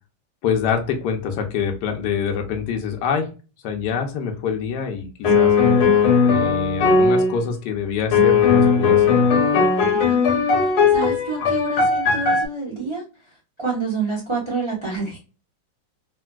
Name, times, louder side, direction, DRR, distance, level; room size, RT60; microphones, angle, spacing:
voice 1, 0.4-3.3 3.6-5.5 6.2-9.2, left 6 dB, 70° left, 3 dB, 1.1 m, -25 dB
sound 1, 5.2-7.4 8.1-12.5, left 5 dB, 85° left, 1.7 m, -17 dB
voice 2, 9.9-10.3 10.9-13.0 13.6-15.2, right 4 dB, 35° right, -5 dB, 0.4 m, -27 dB
3.4 x 2.5 x 2.2 m, 0.33 s
omnidirectional pair, 2.3 m